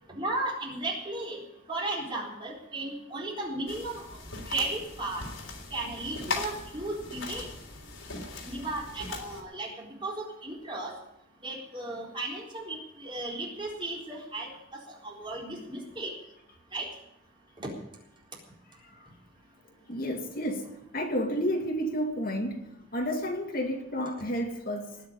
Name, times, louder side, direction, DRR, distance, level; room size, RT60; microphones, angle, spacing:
voice 1, 0.1-1.4 1.7-4.0 4.5-5.2 5.7-7.5 8.5-11.0 11.4-16.1 16.7-16.9 17.6-17.7, right 2 dB, 25° right, 4.1 m, -35 dB
sound 1, 3.7-9.4, left 3 dB, 75° left, 3.5 m, -39 dB
voice 2, 19.9-25.0, equal, 45° left, 2.2 m, -31 dB
19.5 x 6.5 x 9.7 m
head